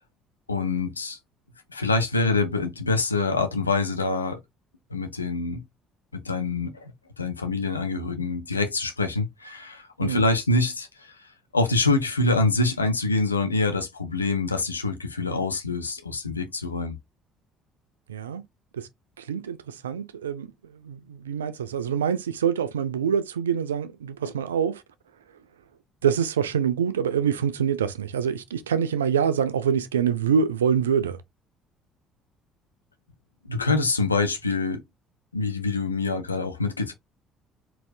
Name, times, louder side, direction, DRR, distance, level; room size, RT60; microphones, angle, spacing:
voice 1, 0.5-1.2 1.7-4.4 4.9-5.6 6.1-6.9 7.2-11.1 11.5-17.0 33.4-34.8 35.3-36.9, left 3 dB, 85° left, 0.7 m, -25 dB
voice 2, 18.1-18.4 18.7-18.9 19.2-20.5 20.8-24.8 26.0-31.2, right 7 dB, 75° right, 0.5 m, -25 dB
4.3 x 4.2 x 2.3 m
figure-of-eight pair, 55°, 0 cm